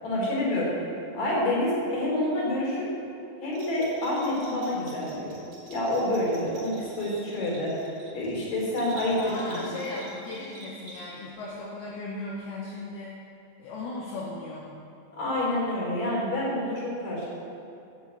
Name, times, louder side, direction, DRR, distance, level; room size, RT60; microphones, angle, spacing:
voice 1, 0.0-0.7 1.1-2.9 3.4-5.4 5.7-9.6 15.1-17.3, left 1 dB, 40° left, -4 dB, 3.9 m, -28 dB
Bell, 3.5-11.4, right 1 dB, 45° right, 3.7 m, -48 dB
voice 2, 9.2-13.2 13.6-14.7, left 2 dB, 70° left, -4 dB, 2.6 m, -37 dB
10.0 x 7.5 x 8.1 m, 2.7 s
omnidirectional pair, 5.5 m